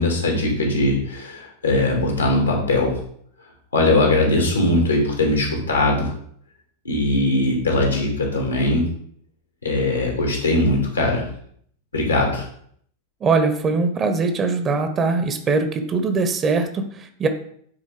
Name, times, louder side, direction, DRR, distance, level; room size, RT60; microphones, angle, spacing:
voice 1, 0.0-3.0 3.7-6.1 6.8-8.9 9.6-11.3 11.9-12.4, left 2 dB, 75° left, 1 dB, 2.4 m, -20 dB
voice 2, 13.2-17.3, right 4 dB, 25° right, 8 dB, 1.1 m, -21 dB
8.9 x 4.1 x 4.9 m, 0.63 s
figure-of-eight pair, 90°, 0 cm